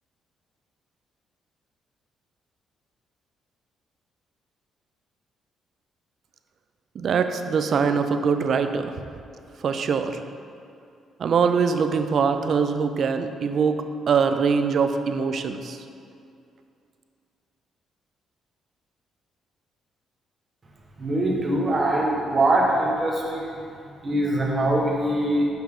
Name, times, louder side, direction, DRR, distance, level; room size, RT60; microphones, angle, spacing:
voice 1, 7.0-8.9 9.6-10.2 11.2-15.8, right 5 dB, 60° right, 8 dB, 0.5 m, -23 dB
voice 2, 21.0-23.6 24.0-25.5, right 1 dB, 30° right, -2 dB, 1.4 m, -23 dB
7.2 x 5.8 x 3.7 m, 2.5 s
cardioid pair, 90°, 0 cm